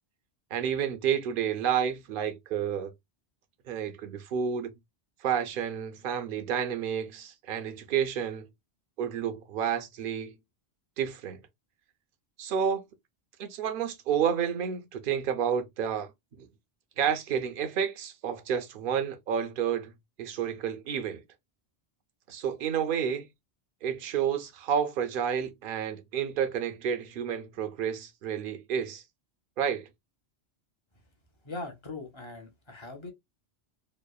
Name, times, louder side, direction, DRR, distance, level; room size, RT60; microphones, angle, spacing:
voice 1, 0.5-2.9 3.7-4.7 5.2-8.5 9.0-10.4 11.0-11.4 12.4-12.8 13.4-16.1 16.4-16.5 17.0-19.9 20.2-21.2 22.3-23.3 23.8-29.0 29.6-29.9, right 8 dB, 60° right, 0.6 m, -30 dB
voice 2, 31.4-33.1, left 3 dB, 30° left, 0.6 m, -40 dB
2.9 x 2.0 x 2.2 m
omnidirectional pair, 1.1 m